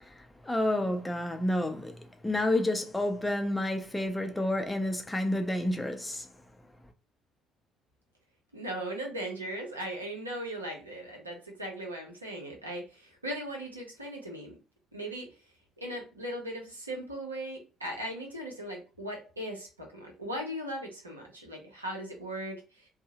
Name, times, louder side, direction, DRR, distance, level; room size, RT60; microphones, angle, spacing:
voice 1, 0.0-6.3, left 1 dB, 15° left, 0.5 m, -30 dB
voice 2, 8.5-14.5 14.9-15.3 15.8-22.6, right 1 dB, 85° right, 0.6 m, -38 dB
2.6 x 2.0 x 2.8 m
figure-of-eight pair, 50°, 0 cm